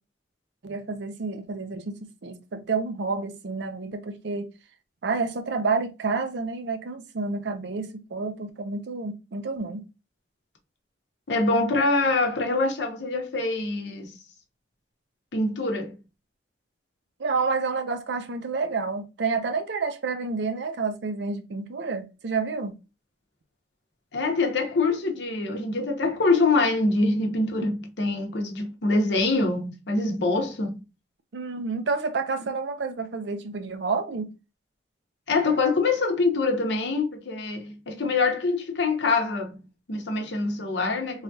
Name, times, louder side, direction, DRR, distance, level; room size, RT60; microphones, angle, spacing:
voice 1, 0.6-4.5 5.0-9.8 17.2-22.7 27.6-27.7 31.3-34.3, right 4 dB, 65° right, 0.5 m, -29 dB
voice 2, 11.3-14.2 15.3-15.9 24.1-30.8 35.3-41.2, left 3 dB, 70° left, 0.8 m, -25 dB
3.2 x 2.3 x 2.6 m
head